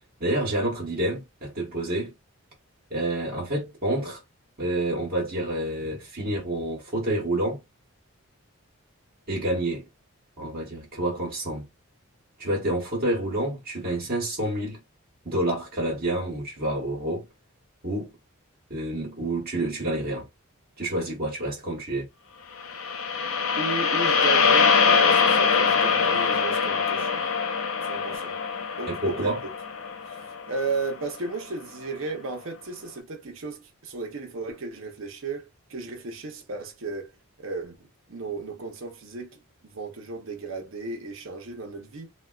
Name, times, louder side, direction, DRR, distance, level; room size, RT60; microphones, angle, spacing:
voice 1, 0.2-2.1 2.9-4.2 4.6-7.6 9.3-9.8 10.4-11.7 12.4-14.8 15.2-17.3 17.8-18.1 18.7-20.3 20.8-22.1 28.9-29.4, right 1 dB, 40° right, 1.0 m, -28 dB
Smelly demon breath sweep, 22.6-30.9, left 5 dB, 65° left, 0.5 m, -23 dB
voice 2, 23.6-27.2 27.8-28.4 28.8-29.4 30.1-37.1 37.4-42.1, right 3 dB, 60° right, 0.7 m, -34 dB
3.4 x 2.2 x 2.3 m
head